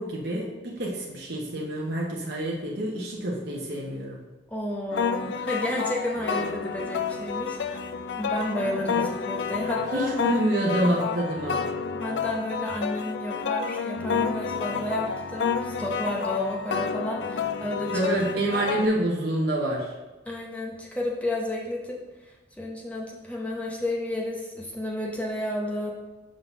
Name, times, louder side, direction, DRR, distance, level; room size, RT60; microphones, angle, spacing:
voice 1, 0.0-4.2 9.0-9.1 9.9-11.6 17.9-19.9, right 1 dB, 60° right, -3 dB, 1.0 m, -27 dB
voice 2, 4.5-7.8 8.2-10.1 11.9-18.0 20.3-25.9, left 1 dB, 10° left, -2 dB, 0.9 m, -32 dB
sound 1, 4.9-18.9, left 6 dB, 65° left, 0.4 m, -30 dB
5.4 x 3.8 x 5.9 m, 1.1 s
head